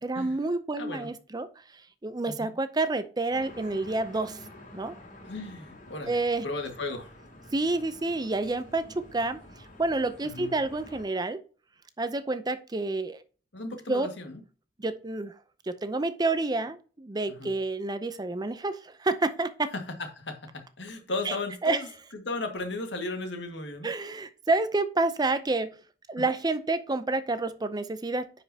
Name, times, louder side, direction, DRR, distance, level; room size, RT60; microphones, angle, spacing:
voice 1, 0.0-1.5 2.0-4.4 4.7-4.9 6.1-6.5 7.5-9.4 9.8-11.4 12.0-13.2 13.9-14.1 14.8-15.3 15.7-19.7 21.2-21.4 21.6-21.8 23.8-25.8 26.1-28.3, right 2 dB, 25° right, 11 dB, 0.6 m, -29 dB
voice 2, 0.8-1.1 2.3-2.5 5.3-7.1 10.2-10.5 13.5-14.4 17.3-17.5 19.7-21.9 22.1-23.9, left 2 dB, 85° left, 5 dB, 1.8 m, -35 dB
sound 1, 3.3-11.0, left 1 dB, 45° left, 2.7 m, -49 dB
9.6 x 5.3 x 2.8 m, 0.37 s
head